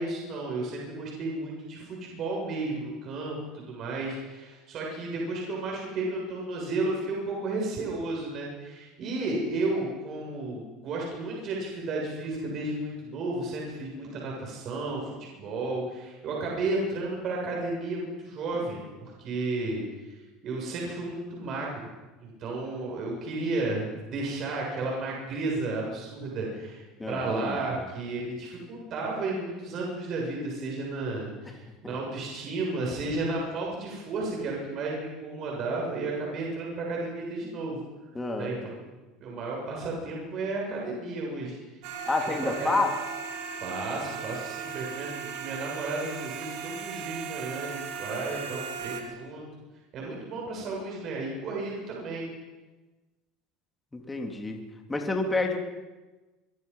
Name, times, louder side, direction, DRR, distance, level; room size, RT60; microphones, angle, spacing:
voice 1, 0.0-20.2 20.4-21.9 22.2-26.8 27.1-37.8 38.4-38.7 39.2-41.6 42.2-42.7 43.6-49.5 49.9-52.3, right 2 dB, 50° right, -2 dB, 7.5 m, -33 dB
voice 2, 27.0-27.8 31.8-32.0 38.1-38.6 42.1-42.9 53.9-54.6 54.9-55.6, left 3 dB, 15° left, 2 dB, 3.3 m, -29 dB
sound 1, 41.8-49.0, right 6 dB, 75° right, 3.6 m, -37 dB
24.5 x 24.0 x 5.8 m, 1.2 s
supercardioid pair, 105°, 0 cm